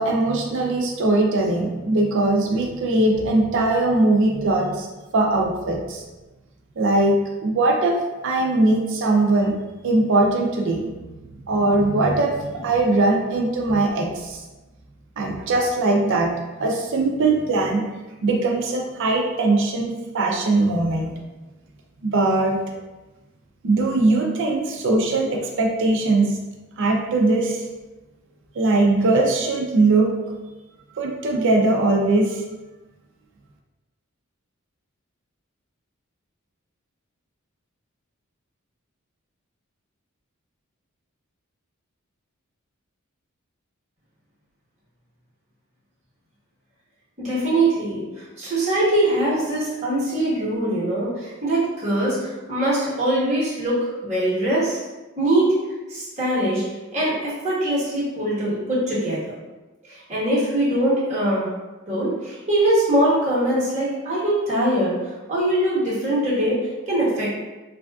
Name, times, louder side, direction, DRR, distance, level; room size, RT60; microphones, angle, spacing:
voice 1, 0.0-4.9 5.1-6.0 6.8-7.1 7.4-8.0 8.2-9.5 9.8-10.9 11.5-14.4 15.2-16.3 16.6-17.8 18.2-21.1 22.0-22.6 23.6-26.4 26.8-27.6 28.6-30.1 31.0-32.4, right 2 dB, 65° right, 1 dB, 0.5 m, -20 dB
voice 2, 47.2-48.0 48.4-54.8 55.2-55.5 55.9-56.6 56.9-59.3 60.1-61.5 61.9-64.9 65.3-66.6 66.9-67.3, right 1 dB, 35° right, -9 dB, 1.1 m, -22 dB
3.3 x 2.5 x 2.3 m, 1.1 s
head